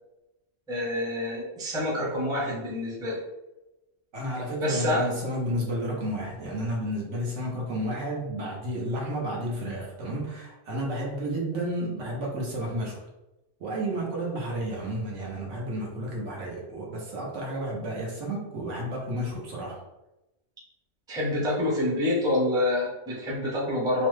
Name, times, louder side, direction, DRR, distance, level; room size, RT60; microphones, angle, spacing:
voice 1, 0.7-3.2 4.6-5.1 21.1-24.1, left 1 dB, 5° right, -5 dB, 0.5 m, -27 dB
voice 2, 4.1-13.1 13.6-19.8, right 1 dB, 80° right, -2 dB, 1.2 m, -31 dB
3.0 x 2.1 x 3.1 m, 0.97 s
omnidirectional pair, 1.2 m